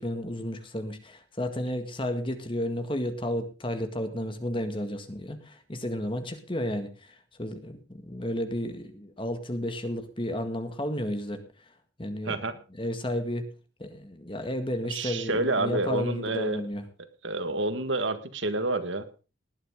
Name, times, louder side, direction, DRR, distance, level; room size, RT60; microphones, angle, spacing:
voice 1, 0.0-11.4 12.0-12.4 12.8-13.5 13.8-16.9, left 1 dB, 25° left, 8 dB, 1.8 m, -32 dB
voice 2, 14.9-16.6 17.2-19.0, right 2 dB, 75° right, 10 dB, 1.7 m, -28 dB
19.5 x 9.9 x 3.7 m, 0.33 s
head